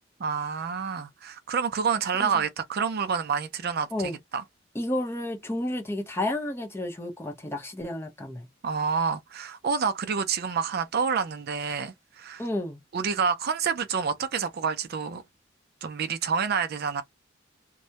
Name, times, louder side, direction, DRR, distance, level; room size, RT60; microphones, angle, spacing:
voice 1, 0.2-4.4 8.6-12.4 12.9-15.2 15.8-17.0, right 6 dB, 55° right, 0.4 m, -28 dB
voice 2, 4.7-8.5 12.4-12.8, left 1 dB, 15° left, 0.6 m, -31 dB
2.2 x 2.0 x 2.7 m
head